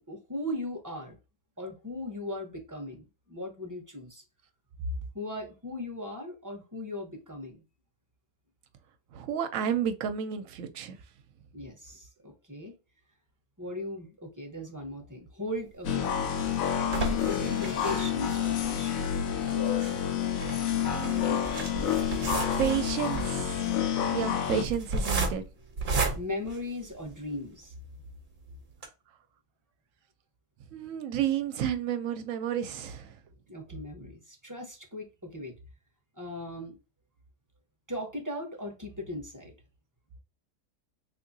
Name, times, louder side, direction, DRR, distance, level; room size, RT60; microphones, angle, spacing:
voice 1, 0.1-1.2 1.6-4.2 5.1-7.6 11.5-12.8 13.6-16.1 16.9-19.1 26.2-27.7 33.5-35.5 36.2-36.8 37.9-39.5, left 1 dB, 20° right, 0.7 m, -38 dB
voice 2, 9.1-11.0 20.9-21.6 22.6-23.8 24.1-25.4 30.7-33.2, right 9 dB, 75° right, 0.9 m, -31 dB
sound 1, 15.8-24.6, left 9 dB, 75° left, 1.1 m, -29 dB
sound 2, 15.9-27.3 27.8-27.9 28.2-28.3 28.7-28.9, right 3 dB, 45° right, 0.8 m, -34 dB
3.6 x 2.9 x 2.6 m
omnidirectional pair, 1.5 m